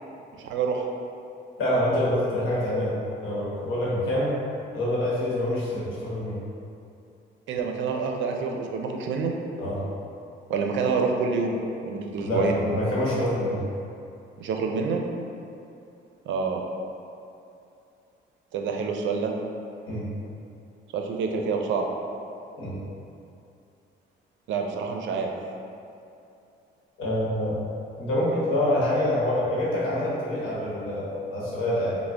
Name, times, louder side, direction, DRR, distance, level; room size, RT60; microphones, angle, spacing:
voice 1, 0.4-0.8 7.5-9.3 10.5-11.6 11.8-12.6 14.4-15.0 16.3-16.6 18.5-19.3 20.9-21.9 24.5-25.3, right 5 dB, 70° right, 2 dB, 0.4 m, -27 dB
voice 2, 1.6-3.0 3.2-4.4 4.7-6.4 9.6-9.8 12.2-13.6 19.9-20.1 22.6-22.8 27.0-27.6 28.0-32.0, left 1 dB, 85° left, -7 dB, 1.0 m, -26 dB
3.6 x 2.0 x 3.3 m, 2.7 s
cardioid pair, 90°, 20 cm